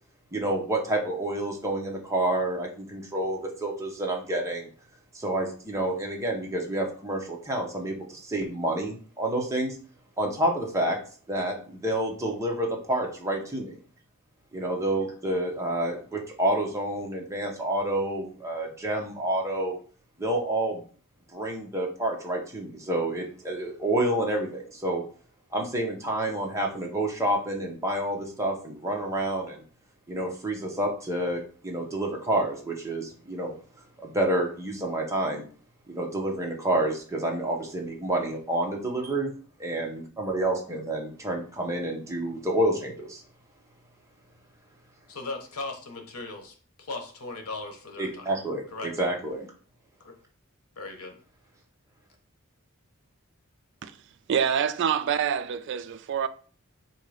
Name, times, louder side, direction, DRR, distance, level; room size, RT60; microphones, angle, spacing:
voice 1, 0.3-4.7 5.1-9.8 10.2-11.0 11.3-13.8 14.5-19.8 20.2-20.8 21.3-25.0 25.5-29.6 30.1-33.5 34.0-35.4 35.9-39.3 39.6-43.2 48.0-49.5, right 1 dB, 15° right, 0.9 m, -29 dB
voice 2, 45.1-48.2 48.7-48.9 50.0-50.1 50.8-51.2, left 3 dB, 90° left, 1.0 m, -38 dB
voice 3, 54.3-56.3, right 7 dB, 55° right, 0.3 m, -26 dB
3.7 x 2.8 x 4.8 m
head